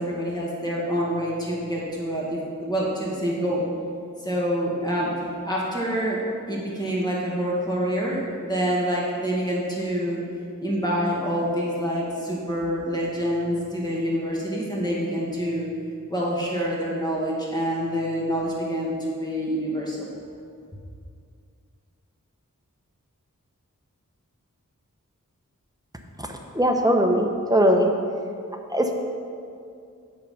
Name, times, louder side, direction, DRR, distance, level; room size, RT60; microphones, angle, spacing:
voice 1, 0.0-3.7 4.2-5.1 5.4-6.2 6.5-10.2 10.6-15.7 16.1-20.1, equal, 15° left, -5 dB, 1.9 m, -26 dB
voice 2, 26.5-27.9 28.7-28.9, equal, 10° right, 2 dB, 0.9 m, -20 dB
8.1 x 5.7 x 5.5 m, 2.4 s
wide cardioid pair, 40°, 32 cm